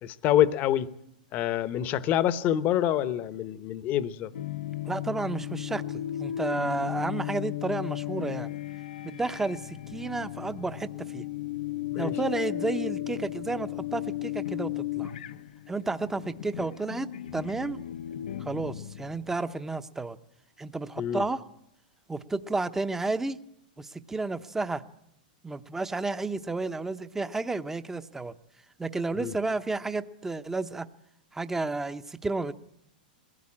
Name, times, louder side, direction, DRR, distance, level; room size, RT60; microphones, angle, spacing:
voice 1, 0.0-0.9 1.3-4.3 11.9-12.1 21.0-21.2 29.2-29.3, left 11 dB, 35° left, 0.9 m, -26 dB
sound 1, 4.3-19.5, left 13 dB, 80° left, 0.9 m, -35 dB
voice 2, 4.8-8.6 9.0-11.2 12.0-15.1 15.7-17.1 17.3-17.8 18.4-20.2 20.6-21.4 22.1-23.4 23.8-24.8 25.4-28.3 28.8-30.9 31.3-32.5, right 3 dB, 10° right, 0.8 m, -31 dB
20.5 x 16.0 x 8.7 m
hypercardioid pair, 130°, 5 cm